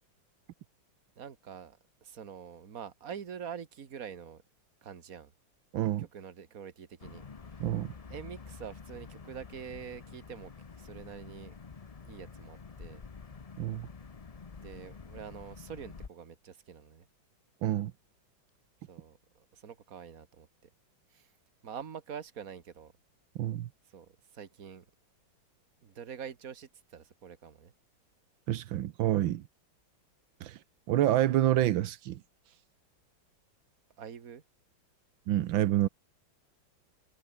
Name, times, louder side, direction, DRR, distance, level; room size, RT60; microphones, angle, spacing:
voice 1, 1.2-4.4 4.8-5.3 6.0-7.2 7.5-7.7 8.1-11.6 12.0-13.0 14.6-17.1 18.9-20.5 21.1-21.3 21.6-22.9 23.9-24.9 25.8-27.7 34.0-34.4, right 7 dB, 45° right, 2.0 m, -45 dB
voice 2, 5.7-6.1 7.6-7.9 13.6-13.9 17.6-17.9 23.4-23.7 28.5-29.4 30.4-30.6 30.9-32.2 35.3-35.9, right 13 dB, 85° right, 1.6 m, -28 dB
sound 1, 7.0-16.1, left 5 dB, 65° left, 0.3 m, -48 dB
omnidirectional pair, 2.1 m